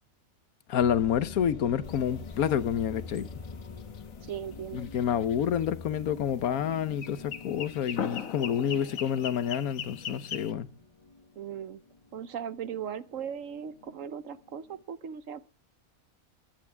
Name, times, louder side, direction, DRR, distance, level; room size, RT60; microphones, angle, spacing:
voice 1, 0.7-3.3 4.7-10.7, left 9 dB, 85° left, 1.3 m, -28 dB
sound 1, 0.8-14.8, left 4 dB, 30° left, 0.7 m, -46 dB
sound 2, 1.8-10.5, left 7 dB, 70° left, 1.5 m, -41 dB
voice 2, 4.3-4.9 11.4-11.8 12.1-15.5, right 8 dB, 65° right, 1.2 m, -38 dB
22.0 x 9.8 x 3.4 m
omnidirectional pair, 1.5 m